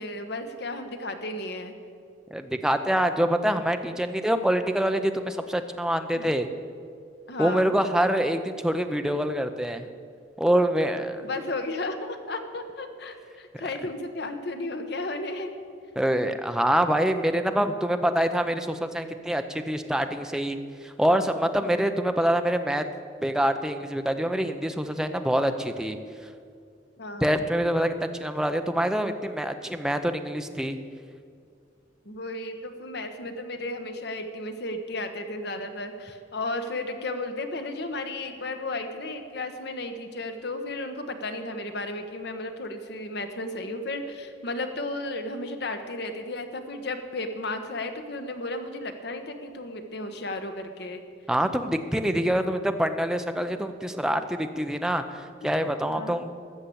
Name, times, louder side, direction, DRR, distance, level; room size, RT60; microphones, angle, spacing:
voice 1, 0.0-1.7 6.1-6.2 7.3-7.7 11.2-15.5 21.6-21.8 27.0-27.4 32.0-51.0 55.4-55.5 55.8-56.2, left 2 dB, 60° left, 7 dB, 1.1 m, -34 dB
voice 2, 2.3-6.5 7.4-9.9 10.4-11.3 16.0-22.8 23.2-26.0 27.2-30.8 51.3-56.3, right 1 dB, 5° right, 7 dB, 0.6 m, -25 dB
13.5 x 6.7 x 8.5 m, 2.3 s
head